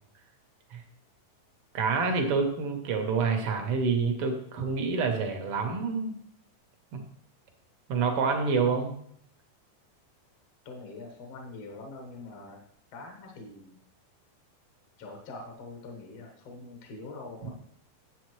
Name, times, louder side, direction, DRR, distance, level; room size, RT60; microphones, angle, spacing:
voice 1, 1.7-6.1 6.9-7.0 7.9-8.9, right 4 dB, 70° right, 4 dB, 1.3 m, -27 dB
voice 2, 10.7-12.6 12.9-13.8 15.0-17.5, left 3 dB, 60° left, 1 dB, 1.9 m, -44 dB
10.5 x 7.5 x 3.1 m, 0.66 s
omnidirectional pair, 3.9 m